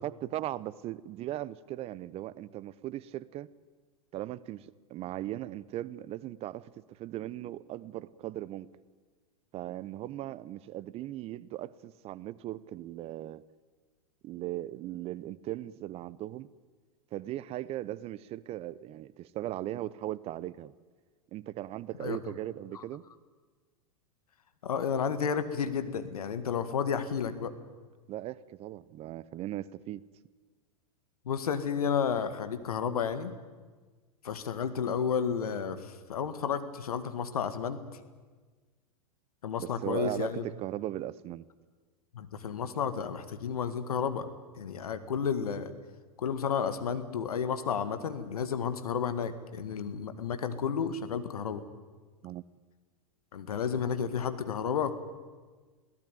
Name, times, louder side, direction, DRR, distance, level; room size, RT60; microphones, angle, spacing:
voice 1, 0.0-3.5 4.1-8.7 9.5-13.4 14.2-16.5 17.1-20.7 21.3-23.0 28.1-30.0 39.6-41.4 52.2-52.4, right 14 dB, 35° right, 0.7 m, -38 dB
voice 2, 24.6-27.5 31.3-33.4 34.2-37.8 39.4-40.4 42.1-44.3 44.6-45.7 46.2-51.6 53.3-54.9, left 7 dB, 75° left, 1.9 m, -32 dB
22.5 x 17.0 x 9.2 m
hypercardioid pair, 105°, 19 cm